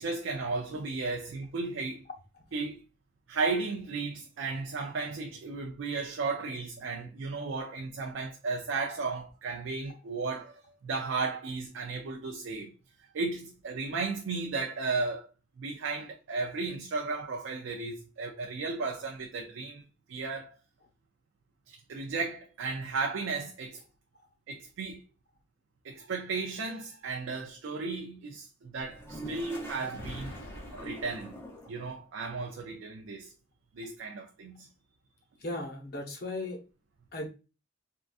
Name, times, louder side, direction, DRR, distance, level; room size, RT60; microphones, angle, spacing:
voice 1, 0.0-2.1 2.5-2.8 3.3-12.7 13.1-15.3 15.6-19.8 20.1-20.6 21.7-23.8 24.5-25.0 25.8-30.3 30.7-31.3 31.7-33.3 33.8-34.7, right 4 dB, 85° right, 0.4 m, -34 dB
Toilet flush, 28.8-31.8, right 1 dB, 15° left, 0.5 m, -44 dB
Explosion, 29.9-32.1, left 1 dB, 85° left, 0.7 m, -46 dB
voice 2, 35.4-36.6 37.1-37.3, left 2 dB, 55° left, 0.8 m, -36 dB
3.7 x 2.3 x 2.4 m
head